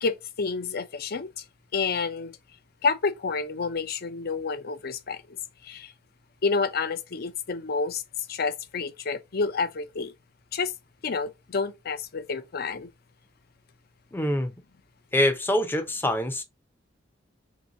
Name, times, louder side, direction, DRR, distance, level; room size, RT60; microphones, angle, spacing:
voice 1, 0.0-1.4 1.7-2.4 2.8-5.4 5.6-5.9 6.4-10.1 10.5-10.7 11.0-12.9, left 4 dB, 50° left, 0.6 m, -29 dB
voice 2, 14.1-14.5 15.1-16.4, left 1 dB, 10° left, 0.6 m, -25 dB
3.5 x 2.8 x 3.8 m
head